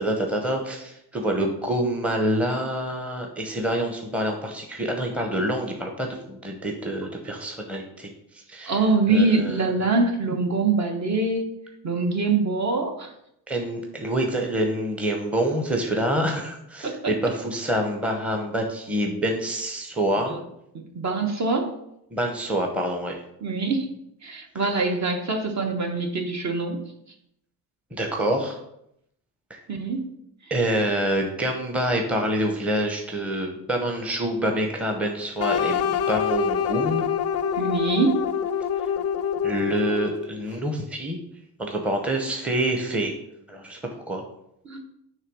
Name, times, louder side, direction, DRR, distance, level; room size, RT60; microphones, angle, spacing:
voice 1, 0.0-8.8 9.1-9.6 13.5-20.4 22.1-23.2 24.5-24.6 27.9-28.6 29.5-29.6 30.5-37.1 39.4-41.2 41.6-43.1 43.5-44.2, right 1 dB, 5° right, 2 dB, 0.8 m, -26 dB
voice 2, 8.6-11.5 11.8-13.1 16.8-17.1 20.3-20.4 20.7-21.7 23.4-23.9 24.2-26.8 29.7-30.1 37.6-38.2 44.6-44.8, right 3 dB, 45° right, 4 dB, 1.2 m, -24 dB
sound 1, 35.4-40.3, left 8 dB, 40° left, 0.4 m, -26 dB
6.6 x 3.6 x 6.1 m, 0.77 s
cardioid pair, 125°, 40 cm